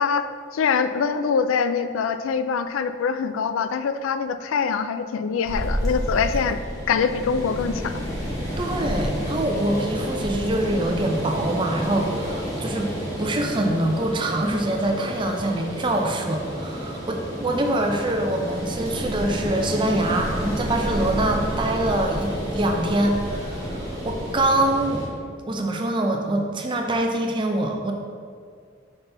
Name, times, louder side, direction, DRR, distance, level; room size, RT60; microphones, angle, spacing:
voice 1, 0.0-6.6 6.9-8.0, left 6 dB, 85° left, 11 dB, 0.3 m, -24 dB
sound 1, 5.4-25.1, equal, 20° left, 1.1 m, -30 dB
voice 2, 8.6-12.9 13.2-25.1 25.5-27.9, right 1 dB, 25° right, 2 dB, 0.5 m, -24 dB
5.9 x 5.6 x 3.4 m, 2.1 s
head